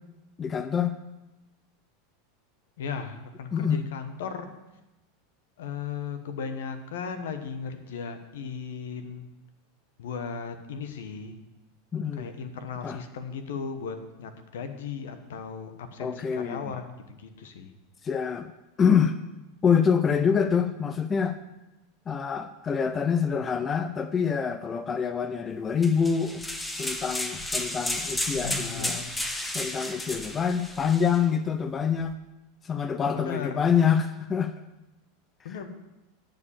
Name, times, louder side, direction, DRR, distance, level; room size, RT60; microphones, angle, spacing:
voice 1, 0.4-0.9 3.5-3.8 11.9-12.3 12.8-13.0 16.0-16.7 18.0-18.5 18.8-19.2 19.6-21.4 22.1-26.4 26.8-29.0 29.5-32.1 32.6-34.5, left 7 dB, 25° left, 11 dB, 0.6 m, -26 dB
voice 2, 2.8-4.5 5.6-9.3 10.0-11.4 12.1-17.7 28.4-29.1 33.1-33.6 35.4-35.7, left 6 dB, 75° left, 8 dB, 1.1 m, -36 dB
sound 1, 25.8-31.2, left 1 dB, 10° left, 1.0 m, -33 dB
10.5 x 5.2 x 7.0 m, 1.0 s
hypercardioid pair, 95°, 0 cm